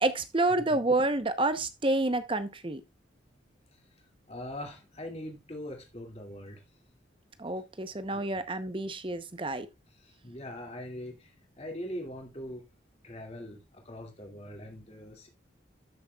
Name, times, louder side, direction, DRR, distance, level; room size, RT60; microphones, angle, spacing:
voice 1, 0.0-2.8 7.4-9.7, right 2 dB, 25° right, 0.8 m, -29 dB
voice 2, 4.3-6.7 8.1-8.4 9.9-12.6 13.0-15.3, left 1 dB, 30° left, 2.2 m, -42 dB
13.5 x 6.5 x 2.3 m
head